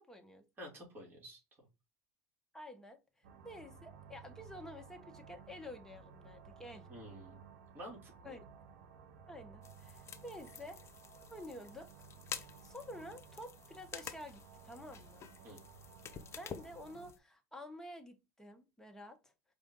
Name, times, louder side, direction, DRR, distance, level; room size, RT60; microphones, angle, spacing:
voice 1, 0.0-0.4 2.5-6.9 8.2-8.4 9.3-10.8 11.3-11.9 12.6-15.3 16.3-19.3, left 1 dB, 5° left, 5 dB, 1.0 m, -50 dB
voice 2, 0.6-1.4 6.9-7.4 7.7-8.4 15.4-15.6, equal, 25° right, -2 dB, 2.6 m, -50 dB
sound 1, 3.2-17.1, right 6 dB, 70° right, 0.9 m, -56 dB
sound 2, 9.6-17.2, left 7 dB, 35° left, 0.7 m, -50 dB
5.0 x 2.6 x 3.6 m, 0.26 s
supercardioid pair, 100°, 8 cm